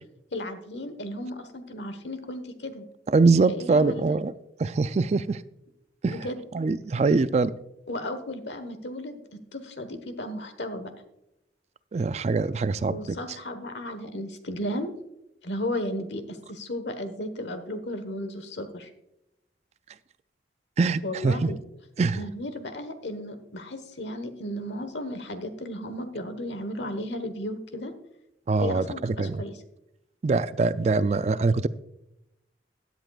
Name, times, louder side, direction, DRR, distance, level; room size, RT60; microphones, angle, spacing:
voice 1, 0.3-2.8 3.5-4.2 6.1-6.4 7.9-10.9 12.9-14.9 15.4-18.9 21.0-21.6 22.1-27.9 28.6-29.5, left 1 dB, 80° left, 9 dB, 1.2 m, -34 dB
voice 2, 3.1-4.3 4.6-5.4 6.0-6.2 6.5-7.5 11.9-13.2 20.8-21.5 22.0-22.2 28.5-29.4 30.2-31.7, right 3 dB, 40° right, 15 dB, 0.3 m, -23 dB
16.5 x 10.0 x 2.4 m, 0.85 s
head